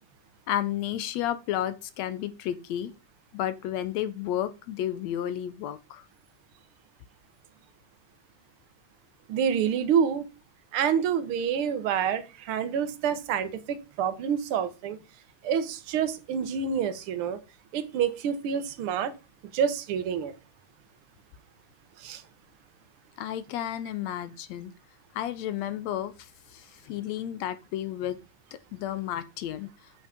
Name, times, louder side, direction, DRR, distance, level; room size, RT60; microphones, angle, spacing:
voice 1, 0.5-2.9 3.3-6.0 23.2-24.7 25.2-28.2 28.7-29.7, left 11 dB, 80° left, 1.8 m, -32 dB
voice 2, 9.3-10.2 10.7-15.0 15.4-17.4 17.7-19.1 19.5-20.3 22.0-22.2, right 7 dB, 65° right, 1.5 m, -27 dB
8.1 x 5.4 x 5.1 m
omnidirectional pair, 3.3 m